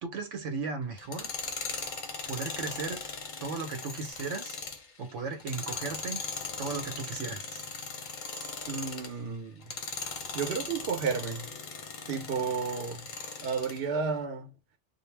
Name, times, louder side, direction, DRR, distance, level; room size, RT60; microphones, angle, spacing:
voice 1, 0.0-1.3 2.2-3.0 3.4-4.6 5.0-6.2 6.6-7.7, right 4 dB, 80° right, 1.1 m, -36 dB
Tools, 1.0-9.2 9.6-13.8, left 4 dB, 50° left, 0.7 m, -39 dB
voice 2, 8.7-9.7 10.3-11.5 12.1-13.1 13.4-14.5, right 5 dB, 60° right, 0.8 m, -32 dB
2.4 x 2.0 x 3.2 m
omnidirectional pair, 1.2 m